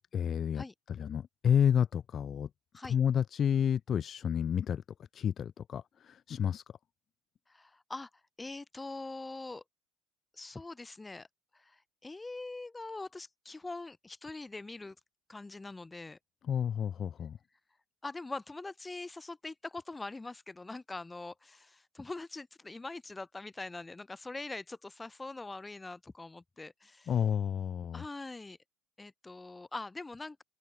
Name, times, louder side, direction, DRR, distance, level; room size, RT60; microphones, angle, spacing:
voice 1, 0.1-2.5 2.8-4.8 5.1-6.6 16.5-17.4 27.1-28.0, left 8 dB, 40° left, 0.4 m, -30 dB
voice 2, 7.5-8.1 8.4-9.6 10.3-11.3 11.5-14.9 15.3-16.2 18.0-27.1 27.9-28.6 29.0-30.4, left 3 dB, 15° left, 1.4 m, -43 dB
supercardioid pair, 95°, 0 cm